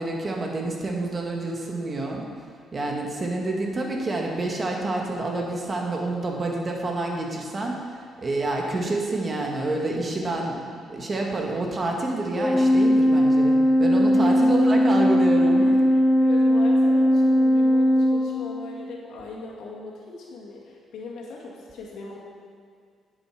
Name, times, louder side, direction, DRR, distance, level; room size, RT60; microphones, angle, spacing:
voice 1, 0.0-2.2 2.7-10.6 10.9-15.7, right 2 dB, 35° right, 0 dB, 1.8 m, -28 dB
Organ, 12.4-18.9, equal, 10° left, 0.4 m, -19 dB
voice 2, 16.2-22.2, left 4 dB, 80° left, -3 dB, 2.3 m, -39 dB
10.5 x 8.0 x 5.0 m, 2.2 s
cardioid pair, 90°, 0 cm